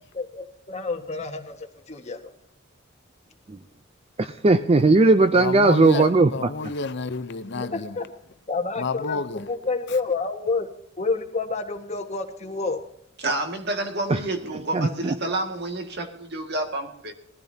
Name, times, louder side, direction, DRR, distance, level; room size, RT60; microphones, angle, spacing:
voice 1, 0.1-2.3 5.9-6.0 7.5-8.0 8.5-10.7 11.0-12.8, left 4 dB, 35° left, 1.6 m, -29 dB
voice 2, 4.2-6.3 14.1-14.2 14.7-15.1, right 3 dB, 30° right, 0.5 m, -17 dB
voice 3, 5.4-7.9 8.8-9.4, left 3 dB, 60° left, 0.7 m, -30 dB
voice 4, 13.2-17.1, right 2 dB, 55° right, 2.0 m, -29 dB
20.5 x 14.5 x 2.8 m
head